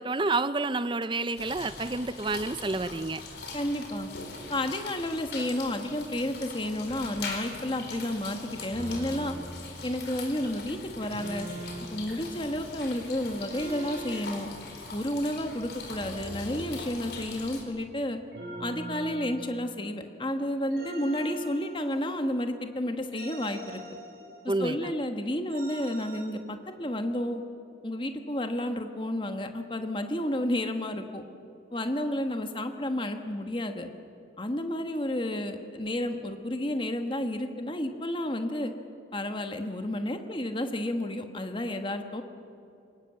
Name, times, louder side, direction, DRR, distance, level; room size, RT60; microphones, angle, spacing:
voice 1, 0.0-3.2 24.5-24.9, right 3 dB, 25° right, 13 dB, 0.6 m, -29 dB
sound 1, 1.3-17.6, left 3 dB, 70° left, 4.5 m, -42 dB
voice 2, 3.5-4.1 4.5-9.4 9.8-11.5 11.9-14.5 14.9-18.2 18.6-23.8 24.6-27.4 27.8-31.2 31.7-33.9 34.4-38.7 39.1-42.2, left 1 dB, 25° left, 6 dB, 1.4 m, -31 dB
sound 2, 6.9-7.1 8.7-9.4 11.1-12.0 13.5-14.2 15.9-17.4 18.3-19.9 20.7-22.3 23.1-24.6 25.5-26.3, right 1 dB, 60° right, 6.1 m, -42 dB
28.0 x 19.0 x 7.8 m, 2.7 s
head